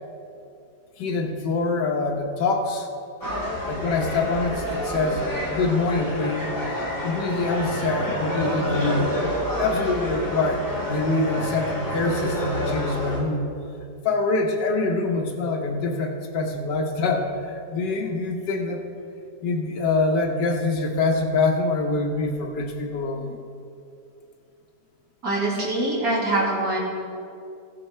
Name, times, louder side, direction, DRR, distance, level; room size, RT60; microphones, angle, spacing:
voice 1, 1.0-2.9 3.7-6.5 7.0-9.2 9.6-13.5 14.0-18.8 19.4-23.4, left 3 dB, 85° left, 3 dB, 1.7 m, -25 dB
sound 1, 3.2-13.2, equal, 10° left, 1.5 m, -28 dB
voice 2, 25.2-26.8, right 2 dB, 60° right, -5 dB, 2.7 m, -24 dB
15.5 x 7.0 x 4.4 m, 2.5 s
omnidirectional pair, 1.8 m